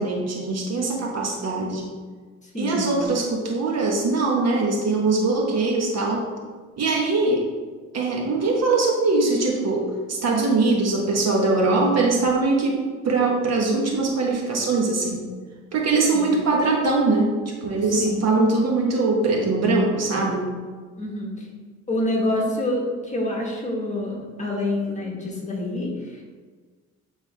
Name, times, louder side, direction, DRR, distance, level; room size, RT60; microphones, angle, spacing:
voice 1, 0.0-1.9 2.5-6.3 6.8-7.4 7.9-15.3 15.7-20.5, right 3 dB, 60° right, -1 dB, 1.6 m, -22 dB
voice 2, 2.5-3.0 16.1-16.4 18.0-18.3 21.0-21.5 21.9-25.9, left 1 dB, 25° left, -1 dB, 1.7 m, -27 dB
9.2 x 4.0 x 3.6 m, 1.5 s
cardioid pair, 90°, 30 cm